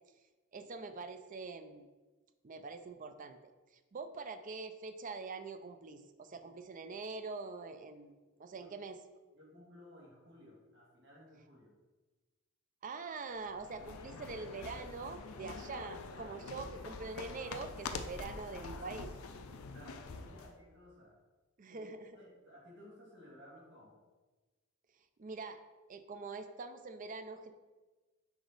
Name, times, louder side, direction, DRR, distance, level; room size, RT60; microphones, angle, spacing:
voice 1, 0.5-1.8 2.4-3.4 3.9-8.1 8.4-9.0 12.8-19.1 21.6-22.1 25.2-25.6 25.9-27.5, right 4 dB, 35° right, 9 dB, 0.4 m, -44 dB
voice 2, 9.3-11.7 19.5-21.2 21.7-21.9 22.1-24.0, left 1 dB, 55° right, -5 dB, 2.0 m, -57 dB
sound 1, 13.4-20.6, left 4 dB, 70° left, 0.5 m, -46 dB
5.2 x 4.9 x 3.9 m, 1.2 s
head